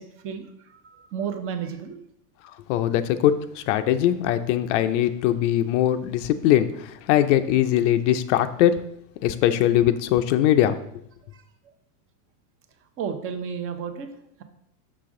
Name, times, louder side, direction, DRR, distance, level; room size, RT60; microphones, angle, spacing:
voice 1, 0.0-2.0 11.3-11.4 13.0-14.4, right 7 dB, 25° right, 8 dB, 0.7 m, -33 dB
voice 2, 2.7-8.8 9.2-10.8, left 12 dB, 50° left, 10 dB, 0.5 m, -21 dB
6.1 x 5.9 x 3.7 m, 0.75 s
supercardioid pair, 135°, 49 cm